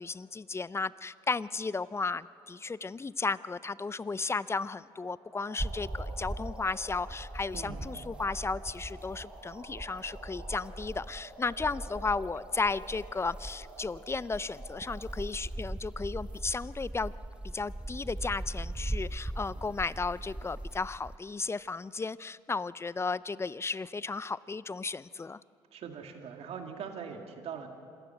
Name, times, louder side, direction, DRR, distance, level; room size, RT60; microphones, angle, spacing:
voice 1, 0.0-17.1 17.4-25.4, left 4 dB, 20° left, 19 dB, 0.5 m, -34 dB
sound 1, 5.1-15.1, right 2 dB, 85° right, 6.3 m, -50 dB
sound 2, 5.6-21.2, right 1 dB, 10° right, 0.8 m, -40 dB
voice 2, 7.5-7.9 25.7-27.7, right 6 dB, 60° right, 4 dB, 2.5 m, -41 dB
26.5 x 13.5 x 8.0 m, 2.5 s
hypercardioid pair, 55°, 12 cm